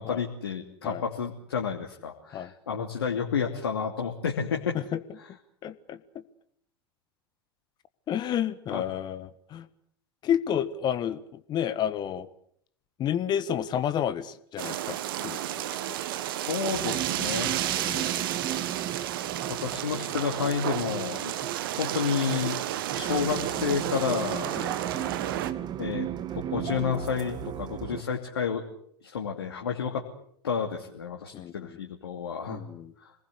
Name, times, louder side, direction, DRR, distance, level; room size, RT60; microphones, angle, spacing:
voice 1, 0.0-4.8 8.7-8.8 15.6-15.8 16.5-17.8 19.5-21.3 21.8-22.6 22.9-24.5 25.8-26.1 26.3-28.6 29.0-30.0 30.4-32.6 33.0-33.1, left 6 dB, 70° left, 2 dB, 2.8 m, -30 dB
voice 2, 5.6-6.2 8.1-9.7 10.2-12.3 13.0-15.6 15.9-16.0 17.8-18.1 24.6-24.7 31.3-31.8 32.5-32.9, left 9 dB, 35° left, 13 dB, 1.5 m, -31 dB
sound 1, 14.6-25.5, right 13 dB, 60° right, 1.8 m, -32 dB
sound 2, 16.7-28.0, right 10 dB, 35° right, 1.7 m, -36 dB
26.5 x 20.0 x 8.3 m, 0.67 s
figure-of-eight pair, 85°, 13 cm